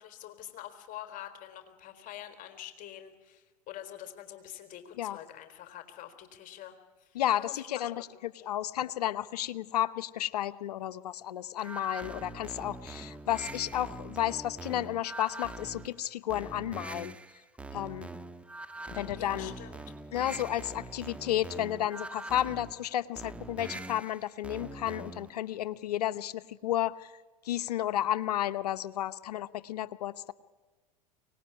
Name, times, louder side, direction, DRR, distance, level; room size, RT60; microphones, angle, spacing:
voice 1, 0.0-6.8 7.0-8.3 19.2-19.8, left 12 dB, 40° left, 8 dB, 4.0 m, -46 dB
voice 2, 7.1-17.1 17.7-18.1 18.9-19.5 20.1-27.1 27.4-30.3, left 12 dB, 75° left, 15 dB, 0.9 m, -32 dB
sound 1, 11.6-25.4, right 2 dB, 5° right, 1.2 m, -43 dB
24.0 x 19.0 x 9.9 m, 1.2 s
hypercardioid pair, 90°, 21 cm